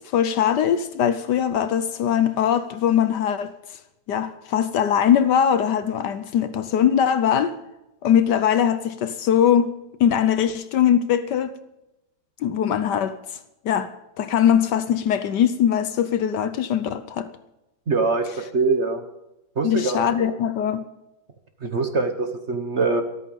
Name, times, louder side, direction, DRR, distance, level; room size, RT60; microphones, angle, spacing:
voice 1, 0.1-3.5 4.1-7.5 8.0-11.5 12.4-13.2 13.6-17.3 19.6-20.8, left 9 dB, 65° left, 1.3 m, -21 dB
voice 2, 17.9-18.3 18.5-19.0 19.6-20.1 21.6-23.0, right 3 dB, 40° right, 1.2 m, -23 dB
13.5 x 13.0 x 5.4 m
omnidirectional pair, 2.1 m